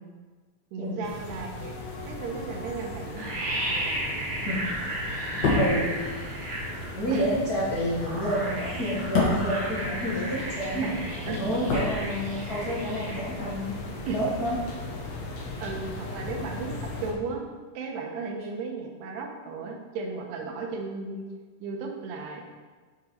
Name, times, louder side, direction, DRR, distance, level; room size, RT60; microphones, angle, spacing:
voice 1, 0.7-1.8 2.1-3.3 7.1-7.3 10.8-11.6 14.1-14.2 15.6-17.4 17.7-21.2 21.6-22.5, right 4 dB, 90° right, 1 dB, 3.1 m, -35 dB
sound 1, 1.0-17.1, left 2 dB, 70° left, 1.7 m, -38 dB
sound 2, 2.8-2.9 3.1-7.0 7.9-13.1 13.5-13.6, right 1 dB, 45° right, 3.2 m, -33 dB
sound 3, 5.2-10.6 10.8-12.7 12.9-13.1, left 3 dB, 55° left, 2.1 m, -30 dB
voice 2, 5.5-5.9 6.9-10.9 11.3-13.8 14.1-14.6, equal, 90° left, -9 dB, 0.8 m, -29 dB
8.1 x 5.7 x 4.6 m, 1.4 s
omnidirectional pair, 4.7 m